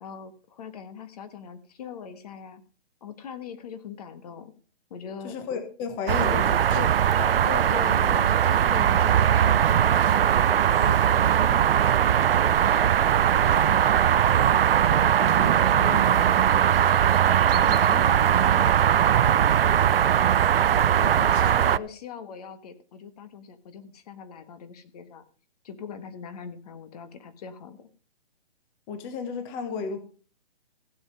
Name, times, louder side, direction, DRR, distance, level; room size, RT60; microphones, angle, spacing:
voice 1, 0.0-2.6 3.0-4.5 4.9-5.4 6.3-6.4 6.7-6.9 7.4-10.0 10.3-12.0 12.4-13.1 13.5-13.9 14.8-16.5 17.6-19.9 20.6-25.2 25.6-27.9, left 7 dB, 35° left, 11 dB, 1.4 m, -40 dB
voice 2, 5.2-6.8 7.2-7.3 21.0-21.8 28.9-30.0, left 6 dB, 20° left, 8 dB, 1.2 m, -34 dB
sound 1, 6.1-21.8, right 9 dB, 60° right, 0.5 m, -20 dB
15.5 x 7.6 x 5.5 m, 0.39 s
hypercardioid pair, 150°, 33 cm